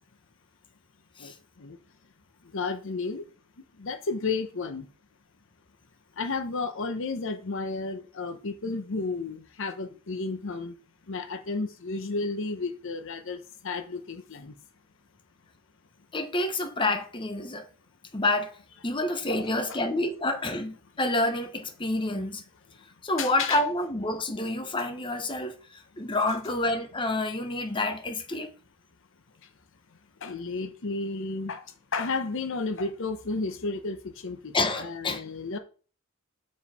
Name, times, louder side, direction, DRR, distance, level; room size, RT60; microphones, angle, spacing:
voice 1, 2.5-3.2 3.8-4.9 6.2-10.7 11.1-13.4 13.6-14.5 19.3-19.5 23.2-23.6 30.2-31.6 31.9-34.0 34.2-35.6, left 3 dB, 60° left, 0.8 m, -32 dB
voice 2, 16.1-17.7 18.1-18.6 18.8-22.4 23.0-28.5 34.5-35.2, left 2 dB, 25° left, 0.9 m, -28 dB
7.2 x 4.8 x 4.2 m
head